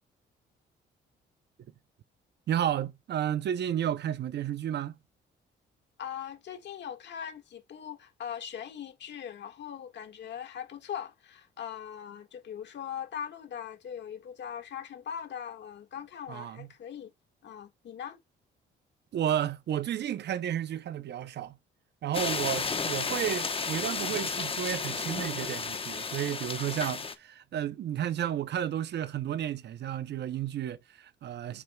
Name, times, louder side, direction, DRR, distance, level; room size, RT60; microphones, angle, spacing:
voice 1, 2.5-5.0 16.3-16.7 19.1-21.6 22.0-31.6, right 10 dB, 60° right, 0.6 m, -32 dB
voice 2, 6.0-17.1 17.4-18.2 26.7-26.8, left 8 dB, 65° left, 1.7 m, -40 dB
sound 1, 22.1-27.1, left 4 dB, 30° left, 0.9 m, -33 dB
9.2 x 5.6 x 2.3 m
cardioid pair, 90°, 20 cm